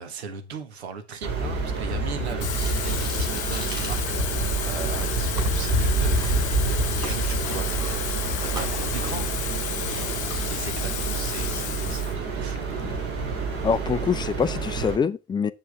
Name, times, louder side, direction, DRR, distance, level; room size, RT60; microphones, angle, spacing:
voice 1, 0.0-9.3 9.5-12.9, right 6 dB, 70° right, 1.4 m, -39 dB
sound 1, 1.2-15.0, right 3 dB, 45° right, 3.0 m, -27 dB
Water tap faucet / Fill (with liquid), 2.3-12.2 12.6-12.8, left 11 dB, 75° left, 0.6 m, -33 dB
sound 2, 2.6-4.6 5.0-5.5 6.0-6.3 6.7-10.4, right 1 dB, 10° right, 4.1 m, -40 dB
voice 2, 13.6-15.5, left 6 dB, 15° left, 0.5 m, -25 dB
7.6 x 7.2 x 3.4 m
figure-of-eight pair, 65°, 34 cm